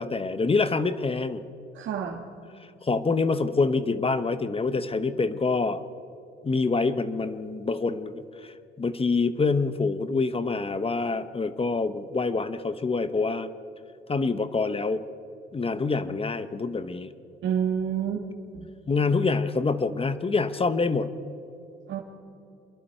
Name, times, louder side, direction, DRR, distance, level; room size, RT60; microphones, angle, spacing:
voice 1, 0.0-1.4 2.8-5.8 6.4-8.5 8.8-13.5 14.1-15.0 15.5-17.1 18.9-21.1, left 4 dB, 30° left, 12 dB, 1.1 m, -26 dB
voice 2, 1.7-2.2 17.4-18.3 18.5-18.7 21.9-22.0, right 8 dB, 75° right, -1 dB, 1.9 m, -28 dB
26.5 x 22.0 x 4.5 m, 2.7 s
cardioid pair, 90°, 20 cm